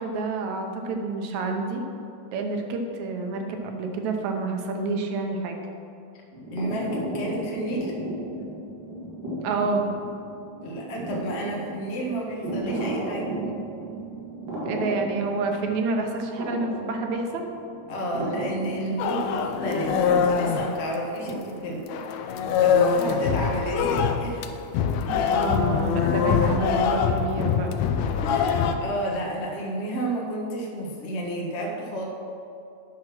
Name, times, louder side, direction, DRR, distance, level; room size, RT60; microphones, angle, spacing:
voice 1, 0.0-1.8 2.3-5.6 9.4-9.9 14.6-17.4 25.1-27.8, right 3 dB, 70° right, 3 dB, 2.1 m, -28 dB
sound 1, 6.3-21.8, right 1 dB, 90° right, 3.7 m, -34 dB
voice 2, 6.5-7.9 10.6-13.3 17.9-24.5 28.2-32.1, right 1 dB, 70° left, -2 dB, 0.6 m, -31 dB
sound 2, 19.0-21.6 21.9-28.8, left 6 dB, 85° left, 1.5 m, -24 dB
9.8 x 5.9 x 6.0 m, 2.6 s
omnidirectional pair, 3.6 m